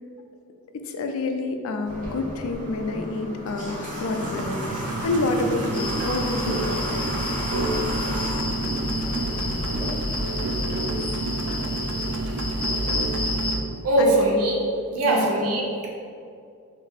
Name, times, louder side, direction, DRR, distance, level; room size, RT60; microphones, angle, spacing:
voice 1, 0.8-7.0 14.0-14.1 15.0-15.3, left 2 dB, 65° left, 5 dB, 0.4 m, -28 dB
Water / Water tap faucet, 1.9-9.9, equal, 35° right, 0.9 m, -34 dB
sound 1, 4.2-13.6, right 2 dB, 70° right, 0.3 m, -29 dB
sound 2, 5.7-13.5, left 2 dB, 25° left, 0.7 m, -31 dB
voice 2, 13.8-14.6 14.9-15.9, right 1 dB, 85° right, -2 dB, 0.8 m, -21 dB
3.6 x 2.7 x 3.5 m, 2.4 s
head